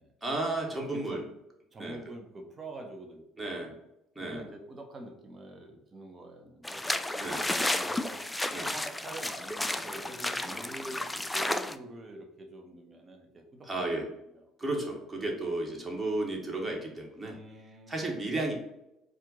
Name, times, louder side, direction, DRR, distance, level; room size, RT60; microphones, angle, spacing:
voice 1, 0.2-1.2 1.8-2.0 3.4-3.7 4.1-4.5 7.2-7.4 8.5-8.7 13.6-14.1 14.6-17.4 17.9-18.5, right 2 dB, 15° right, 0 dB, 1.5 m, -33 dB
voice 2, 0.9-1.3 1.7-3.8 4.2-8.2 8.6-14.0 14.3-14.4 17.2-18.2, right 1 dB, 35° right, 4 dB, 1.1 m, -46 dB
sound 1, 6.6-11.8, left 1 dB, 10° left, 0.4 m, -32 dB
4.5 x 2.5 x 3.9 m, 0.88 s
hypercardioid pair, 65°, 0 cm